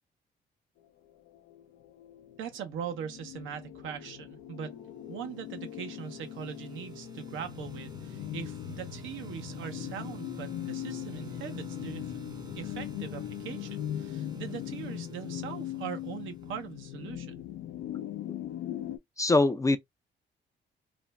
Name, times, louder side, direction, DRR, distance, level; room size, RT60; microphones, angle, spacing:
sound 1, 1.1-19.0, left 12 dB, 80° left, 0.5 m, -40 dB
voice 1, 2.4-4.8 5.1-12.1 12.5-17.4, right 8 dB, 80° right, 0.7 m, -41 dB
sound 2, 5.2-17.0, right 7 dB, 20° right, 0.6 m, -51 dB
voice 2, 19.2-19.8, left 2 dB, 15° left, 0.3 m, -23 dB
2.5 x 2.1 x 3.1 m
cardioid pair, 90°, 20 cm